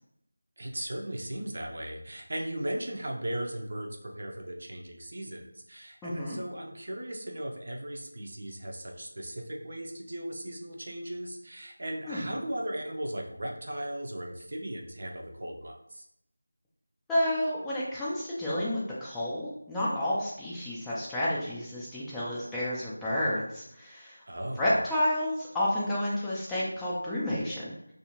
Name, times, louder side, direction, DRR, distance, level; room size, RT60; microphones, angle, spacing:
voice 1, 0.6-16.1 24.3-24.7, right 1 dB, 55° right, 1 dB, 0.5 m, -37 dB
voice 2, 6.0-6.4 12.1-12.3 17.1-24.2 24.6-27.9, left 1 dB, 5° left, -8 dB, 0.3 m, -30 dB
2.4 x 2.4 x 2.9 m, 0.77 s
figure-of-eight pair, 170°, 0 cm